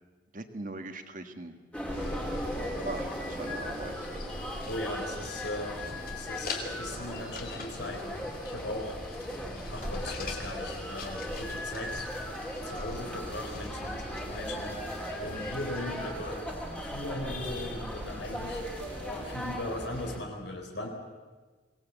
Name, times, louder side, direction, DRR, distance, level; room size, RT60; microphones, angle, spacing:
voice 1, 0.3-1.5 2.8-3.9, right 2 dB, 45° right, 7 dB, 1.7 m, -40 dB
sound 1, 1.7-20.2, equal, 5° left, 2.8 m, -38 dB
sound 2, 1.9-16.1, left 4 dB, 50° left, 2.9 m, -46 dB
sound 3, 1.9-19.5, right 1 dB, 75° right, 2.1 m, -45 dB
voice 2, 2.5-2.8 4.6-5.9 6.1-9.0 9.7-12.2 12.6-14.8 15.2-16.4 16.8-18.6 19.0-20.9, left 1 dB, 75° left, 2 dB, 4.2 m, -38 dB
24.0 x 18.5 x 8.2 m, 1.4 s
head